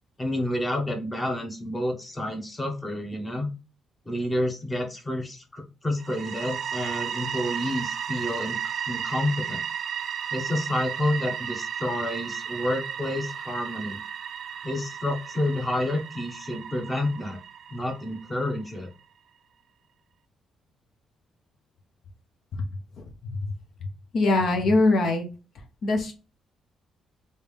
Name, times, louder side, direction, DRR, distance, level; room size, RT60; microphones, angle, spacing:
voice 1, 0.2-3.5 4.1-9.6 10.3-14.0 14.6-17.4 17.7-18.9, left 1 dB, 20° left, 3 dB, 1.0 m, -29 dB
sound 1, 6.0-18.7, right 8 dB, 60° right, 0.3 m, -34 dB
voice 2, 23.0-23.4 24.1-25.3 25.8-26.1, left 2 dB, 60° left, 4 dB, 0.8 m, -22 dB
3.3 x 2.8 x 3.3 m, 0.32 s
cardioid pair, 90°, 0 cm